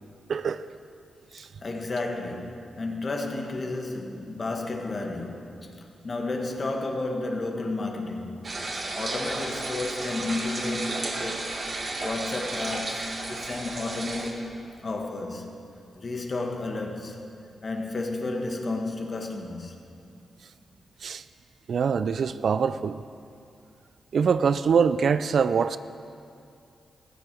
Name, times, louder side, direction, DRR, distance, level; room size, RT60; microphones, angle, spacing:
voice 1, 0.3-0.6 1.3-1.5 21.0-21.2 21.7-23.0 24.1-25.8, right 6 dB, 70° right, 0.4 m, -24 dB
voice 2, 1.6-8.5 9.0-11.5 12.0-14.4 14.8-15.6 16.0-17.2 17.6-19.8, left 2 dB, 45° left, 1.7 m, -32 dB
sound 1, 8.4-14.3, right 2 dB, 50° right, 1.9 m, -33 dB
15.0 x 9.1 x 6.2 m
cardioid pair, 60°, 0 cm